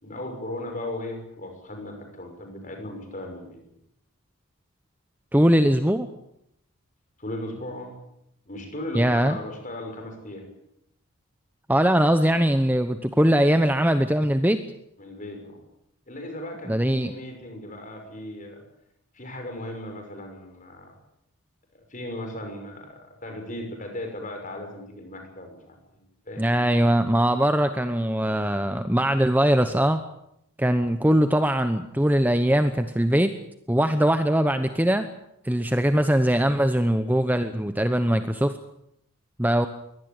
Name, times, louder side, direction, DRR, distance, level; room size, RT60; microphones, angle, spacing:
voice 1, 0.0-3.6 7.2-7.9 8.4-10.5 15.0-15.6 16.1-18.6 19.1-20.9 21.7-26.6, left 1 dB, 35° left, 4 dB, 6.3 m, -37 dB
voice 2, 5.3-6.1 8.9-9.4 11.7-14.6 16.7-17.1 26.4-30.0 30.6-33.3 33.7-35.1 35.4-38.6 39.4-39.7, equal, 10° right, 9 dB, 0.9 m, -21 dB
23.0 x 18.5 x 9.0 m, 0.78 s
head